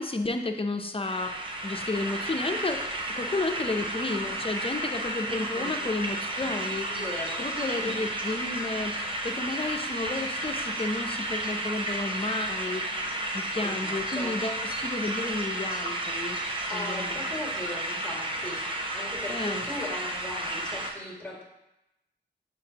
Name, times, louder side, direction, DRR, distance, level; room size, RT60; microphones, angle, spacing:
voice 1, 0.0-2.9 3.2-6.9 7.4-12.8 13.3-16.4 16.7-17.3 19.3-19.7, left 2 dB, 30° left, 5 dB, 0.6 m, -32 dB
sound 1, 1.0-20.9, right 1 dB, 25° right, 0.7 m, -32 dB
voice 2, 5.2-5.7 6.9-7.4 13.6-14.3 16.7-21.4, left 1 dB, 10° left, -3 dB, 1.9 m, -38 dB
6.9 x 5.2 x 2.9 m, 0.93 s
wide cardioid pair, 75°, 19 cm